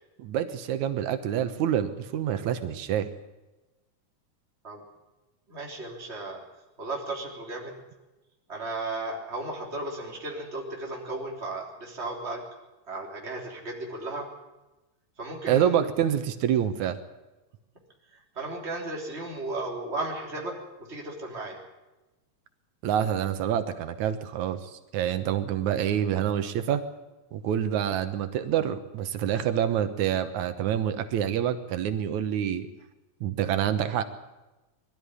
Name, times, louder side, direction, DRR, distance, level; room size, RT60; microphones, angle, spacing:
voice 1, 0.2-3.1 15.5-17.0 22.8-26.8 27.3-32.7 33.2-34.0, right 10 dB, 90° right, 10 dB, 2.5 m, -27 dB
voice 2, 5.5-6.4 6.8-7.7 8.5-12.4 12.9-14.3 15.2-15.8 18.4-21.6, right 2 dB, 20° right, -1 dB, 3.7 m, -35 dB
22.0 x 12.5 x 9.8 m, 1.1 s
omnidirectional pair, 3.3 m